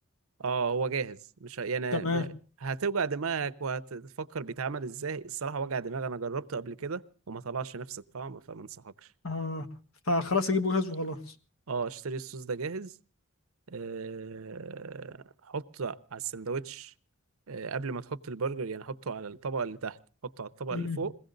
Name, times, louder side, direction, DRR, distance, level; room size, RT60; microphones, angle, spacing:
voice 1, 0.4-2.3 2.6-8.9 11.7-12.9 13.7-16.9 17.5-20.0 20.2-21.1, right 5 dB, 75° right, 0.7 m, -34 dB
voice 2, 1.9-2.2 9.2-9.7 10.1-11.2 20.7-21.0, left 3 dB, 70° left, 1.5 m, -28 dB
22.0 x 16.5 x 3.9 m
head